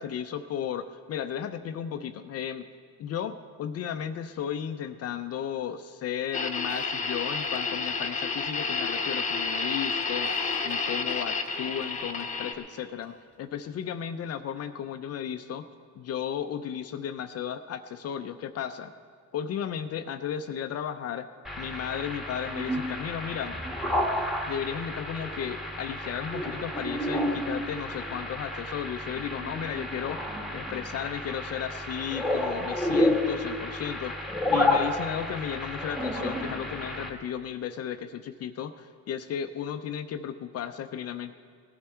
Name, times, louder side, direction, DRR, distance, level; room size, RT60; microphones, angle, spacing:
voice 1, 0.0-2.7 3.0-15.7 16.0-18.9 19.3-21.3 21.6-23.6 24.5-30.3 30.5-34.1 34.5-41.3, left 9 dB, 45° left, 9 dB, 0.6 m, -34 dB
sound 1, 6.3-12.5, left 4 dB, 20° left, 1.0 m, -30 dB
Cough, 6.7-8.2 8.5-8.6 8.9-9.4 9.6-11.9 12.2-12.3 13.0-13.8, right 2 dB, 40° right, 3.2 m, -47 dB
sound 2, 21.4-37.1, left 1 dB, ahead, 1.4 m, -30 dB
18.5 x 11.5 x 4.5 m, 2.1 s
cardioid pair, 145°, 34 cm